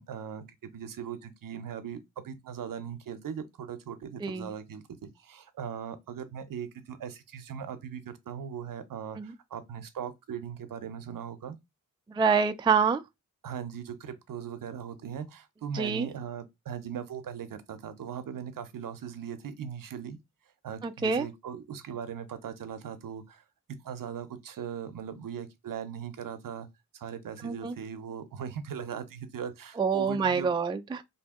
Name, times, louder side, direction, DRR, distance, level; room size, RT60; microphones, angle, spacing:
voice 1, 0.0-11.6 13.4-20.2 20.6-23.4 23.7-26.7 26.9-30.6, right 8 dB, 75° right, 0.6 m, -39 dB
voice 2, 12.1-13.0 15.7-16.1 20.8-21.3 27.4-27.7 29.8-31.0, right 6 dB, 15° right, 0.3 m, -26 dB
2.7 x 2.6 x 3.5 m
cardioid pair, 65°, 33 cm